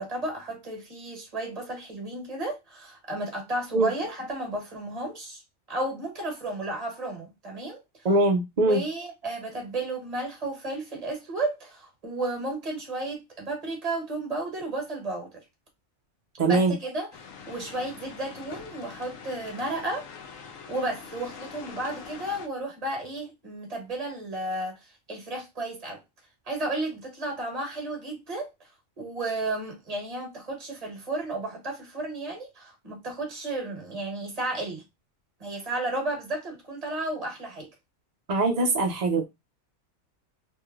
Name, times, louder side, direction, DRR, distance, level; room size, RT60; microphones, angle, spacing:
voice 1, 0.0-5.4 5.7-7.8 8.7-15.3 16.4-17.1 17.5-20.0 20.7-26.0 26.5-28.5 29.0-34.8 35.4-37.7, right 2 dB, 30° right, 1.2 m, -33 dB
voice 2, 8.0-8.8 16.4-16.7 38.3-39.2, right 2 dB, 60° right, 0.4 m, -22 dB
sound 1, 17.1-22.5, left 6 dB, 80° left, 1.1 m, -44 dB
3.2 x 3.0 x 2.3 m
omnidirectional pair, 1.4 m